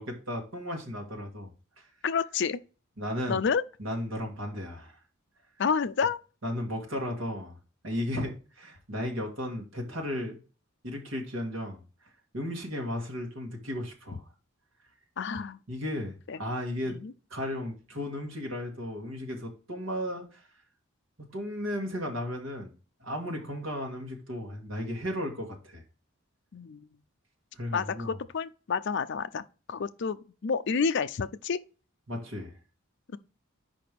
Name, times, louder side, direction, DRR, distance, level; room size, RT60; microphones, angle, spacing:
voice 1, 0.0-1.5 1.8-1.9 3.0-3.4 3.8-5.0 6.4-7.6 7.8-10.4 10.8-11.8 12.3-14.2 15.7-17.0 17.3-20.5 21.2-22.7 23.0-25.8 27.5-28.2 32.1-32.6, left 1 dB, 65° right, 1.9 m, -35 dB
voice 2, 2.0-2.6 3.3-3.6 5.6-6.2 15.2-15.6 16.3-16.4 16.9-17.1 26.5-26.9 27.7-29.4 29.7-31.6, left 5 dB, 55° left, 0.4 m, -29 dB
5.0 x 4.8 x 5.2 m
head